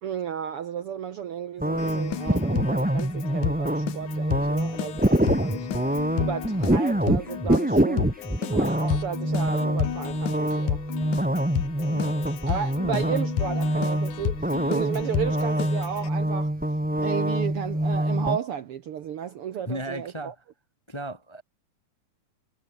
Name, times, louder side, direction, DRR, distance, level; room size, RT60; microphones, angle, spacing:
voice 1, 0.0-5.7 6.2-8.1 8.4-10.8 12.4-16.5 17.0-20.3, right 8 dB, 60° right, 1.6 m, -33 dB
sound 1, 1.6-18.4, right 1 dB, 5° right, 0.7 m, -25 dB
Keyboard (musical), 1.8-16.1, left 10 dB, 85° left, 3.2 m, -32 dB
voice 2, 11.9-12.2 19.7-20.3 20.9-21.4, equal, 10° left, 1.4 m, -35 dB
omnidirectional pair, 3.5 m